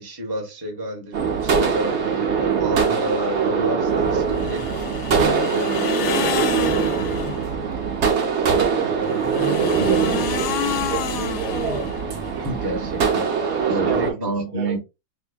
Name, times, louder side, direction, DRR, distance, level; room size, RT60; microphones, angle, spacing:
voice 1, 0.0-7.0 9.8-10.2 12.3-13.3 13.7-14.8, right 1 dB, 20° right, 0.8 m, -30 dB
sound 1, 1.1-14.1, right 6 dB, 55° right, 0.9 m, -22 dB
sound 2, 4.3-7.5 8.9-12.3, left 9 dB, 90° left, 1.2 m, -29 dB
voice 2, 8.4-8.9 9.5-11.6 12.4-12.5 13.6-14.2 14.5-14.8, right 8 dB, 80° right, 1.7 m, -30 dB
5.1 x 2.2 x 2.2 m
omnidirectional pair, 1.8 m